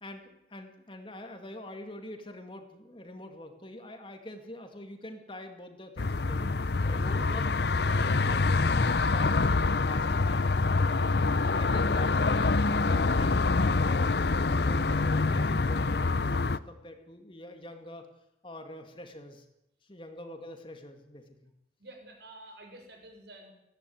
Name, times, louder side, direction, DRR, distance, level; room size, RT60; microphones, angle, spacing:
voice 1, 0.0-6.5 6.8-7.5 7.8-11.1 11.5-18.1 18.4-19.5 19.8-21.5, left 1 dB, 25° left, 6 dB, 2.3 m, -45 dB
sound 1, 6.0-16.6, left 3 dB, 60° left, 0.7 m, -26 dB
voice 2, 21.8-23.5, right 1 dB, 65° right, 3 dB, 6.5 m, -49 dB
19.5 x 16.5 x 9.4 m, 0.85 s
head